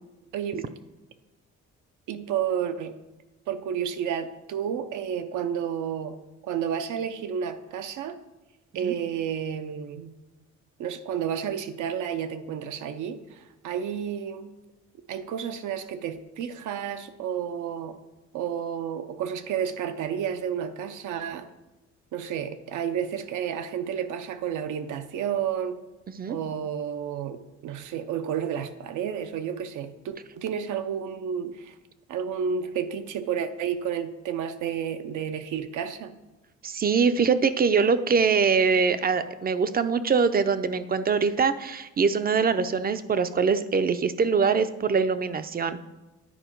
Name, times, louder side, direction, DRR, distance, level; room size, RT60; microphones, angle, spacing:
voice 1, 0.3-0.7 2.1-2.9 3.5-6.2 6.4-8.2 8.7-10.1 10.8-14.5 15.1-18.0 18.3-21.5 22.1-25.8 26.3-31.8 32.1-36.2, right 8 dB, 80° right, 9 dB, 0.7 m, -31 dB
voice 2, 36.6-45.8, right 5 dB, 30° right, 12 dB, 0.5 m, -23 dB
10.0 x 4.6 x 4.5 m, 1.1 s
cardioid pair, 90°, 30 cm